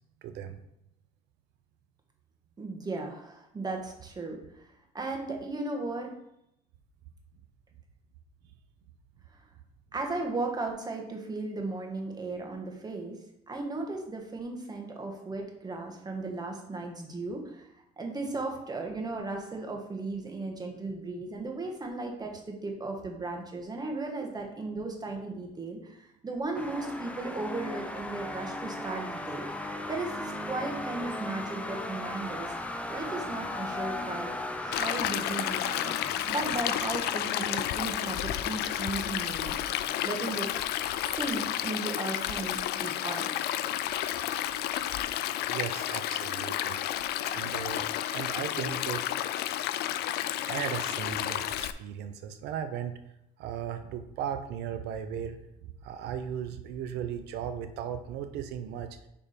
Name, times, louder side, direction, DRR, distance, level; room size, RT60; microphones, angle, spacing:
voice 1, 0.2-0.6 45.5-46.8 47.3-49.1 50.5-53.0 53.4-59.0, right 8 dB, 85° right, 8 dB, 0.6 m, -37 dB
voice 2, 2.6-6.1 9.3-9.4 9.9-13.2 13.5-17.7 18.0-29.5 29.9-32.5 32.9-34.3 34.6-35.9 36.3-39.6 39.8-40.7 41.0-43.3, right 3 dB, 25° right, 2 dB, 1.4 m, -36 dB
sound 1, 26.5-41.4, left 1 dB, 5° left, 0.6 m, -38 dB
Stream, 34.7-51.7, left 12 dB, 75° left, 0.4 m, -31 dB
6.8 x 3.6 x 5.1 m, 0.80 s
cardioid pair, 110°, 17 cm